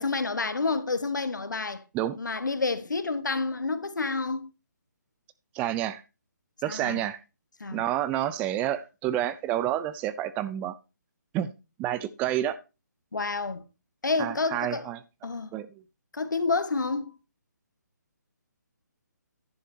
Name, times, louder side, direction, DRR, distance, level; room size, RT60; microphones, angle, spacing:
voice 1, 0.0-1.8 2.2-4.5 6.7-7.0 7.6-7.9 13.1-13.6 14.0-14.9 15.2-15.5 16.1-17.2, left 3 dB, 85° left, 1.5 m, -29 dB
voice 2, 5.5-6.0 6.6-7.2 7.7-10.7 11.3-11.5 11.8-12.6 14.2-15.0 15.5-15.7, right 12 dB, 15° right, 0.5 m, -29 dB
11.0 x 10.0 x 2.8 m
figure-of-eight pair, 150°, 10 cm